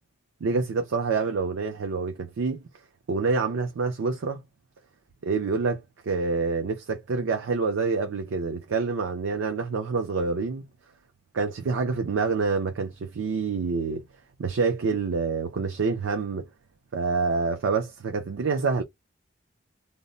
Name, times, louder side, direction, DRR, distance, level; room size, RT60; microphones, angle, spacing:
voice 1, 0.4-2.6 3.1-4.4 5.2-10.6 11.3-14.0 14.4-16.4 16.9-18.8, right 4 dB, 85° right, 0.4 m, -27 dB
2.1 x 2.1 x 3.8 m
head